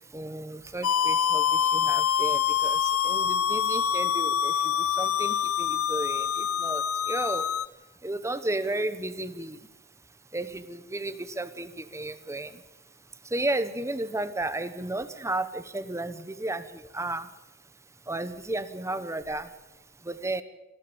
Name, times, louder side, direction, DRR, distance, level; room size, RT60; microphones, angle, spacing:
voice 1, 0.1-7.5 8.0-9.6 10.3-12.5 13.3-16.6 16.9-17.3 18.1-19.5 20.0-20.4, right 2 dB, 15° right, 13 dB, 1.1 m, -33 dB
sound 1, 0.8-7.7, left 8 dB, 80° left, 0.7 m, -25 dB
26.5 x 13.5 x 8.8 m, 1.0 s
head